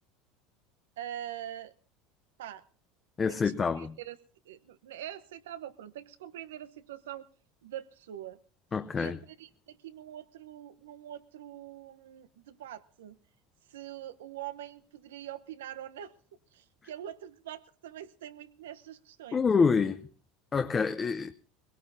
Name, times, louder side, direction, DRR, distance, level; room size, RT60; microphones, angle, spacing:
voice 1, 1.0-1.7 2.4-2.6 3.3-4.2 4.4-7.3 7.6-8.4 8.9-13.2 13.7-16.1 16.5-19.4, right 11 dB, 85° right, 0.8 m, -44 dB
voice 2, 3.2-3.9 8.7-9.2 19.3-20.1 20.5-21.3, left 5 dB, 25° left, 0.6 m, -27 dB
21.5 x 17.5 x 2.7 m
supercardioid pair, 100°, 0 cm